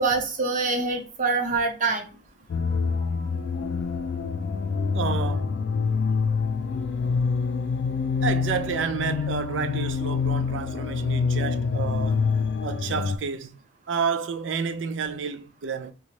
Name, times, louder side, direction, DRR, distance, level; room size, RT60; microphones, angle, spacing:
voice 1, 0.0-2.1, right 3 dB, 45° right, 0.8 m, -25 dB
sound 1, 2.5-13.2, left 5 dB, 65° left, 0.3 m, -26 dB
voice 2, 4.9-5.6 8.2-12.2 12.6-13.6 13.9-15.9, right 6 dB, 85° right, 0.4 m, -30 dB
3.1 x 2.2 x 3.9 m
head